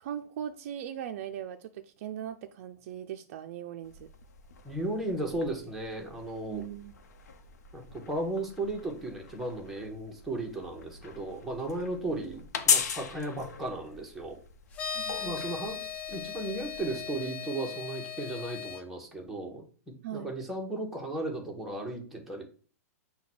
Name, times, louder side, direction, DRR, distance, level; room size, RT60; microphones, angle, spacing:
voice 1, 0.0-4.1 6.5-6.9 14.9-15.5 20.0-20.3, right 10 dB, 50° right, 6 dB, 0.4 m, -39 dB
sound 1, 3.8-17.3, left 6 dB, 85° left, 0.8 m, -38 dB
voice 2, 4.6-6.6 7.7-14.4 15.2-15.8 16.1-19.6 20.1-22.4, right 2 dB, ahead, -1 dB, 0.8 m, -35 dB
sound 2, 14.7-18.8, left 7 dB, 15° left, 0.4 m, -38 dB
5.7 x 2.2 x 4.2 m, 0.41 s
hypercardioid pair, 150°, 9 cm